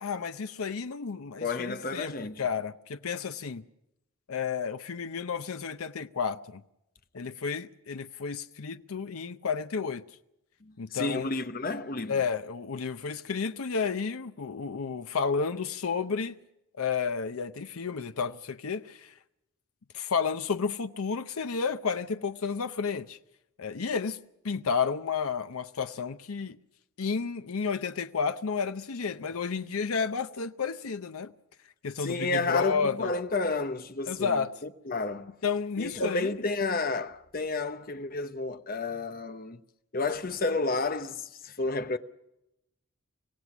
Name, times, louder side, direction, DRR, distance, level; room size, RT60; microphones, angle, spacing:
voice 1, 0.0-2.1 2.4-3.6 4.3-6.6 7.1-10.0 10.8-11.3 12.1-16.3 16.8-19.1 19.9-23.2 23.6-24.2 24.4-26.6 27.0-31.3 31.8-33.1 34.1-34.5 35.4-36.3, left 5 dB, 80° left, 0.7 m, -31 dB
voice 2, 1.4-2.4 10.6-12.2 32.0-35.4 35.8-39.6 39.9-42.0, left 3 dB, 40° left, 0.9 m, -31 dB
25.5 x 16.5 x 6.1 m
head